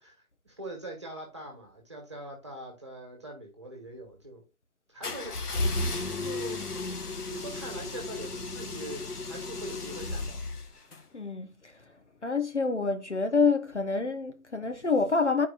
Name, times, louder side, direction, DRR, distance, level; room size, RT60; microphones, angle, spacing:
voice 1, 0.0-4.4 4.9-5.4 6.2-6.6 7.0-10.4, right 1 dB, 20° right, 1.4 m, -43 dB
sound 1, 5.0-11.0, left 2 dB, 85° left, 1.3 m, -34 dB
voice 2, 11.1-11.7 12.2-15.5, left 4 dB, 50° left, 0.8 m, -27 dB
10.5 x 4.6 x 2.5 m
figure-of-eight pair, 170°, 45 cm